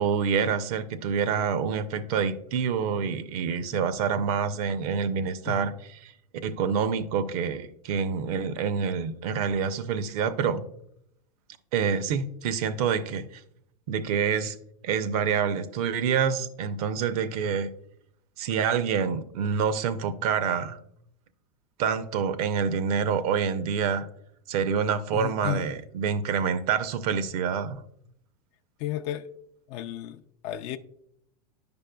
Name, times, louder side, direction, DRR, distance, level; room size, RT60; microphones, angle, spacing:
voice 1, 0.0-5.7 6.0-6.1 6.4-10.7 11.7-13.4 13.9-14.6 14.8-17.7 18.4-20.8 21.8-24.1 24.5-27.8, right 6 dB, 65° right, 0.6 m, -27 dB
voice 2, 5.1-5.6 25.1-25.7 28.8-29.3 29.7-30.8, left 12 dB, 50° left, 0.4 m, -34 dB
9.6 x 5.2 x 2.2 m
hypercardioid pair, 115°, 21 cm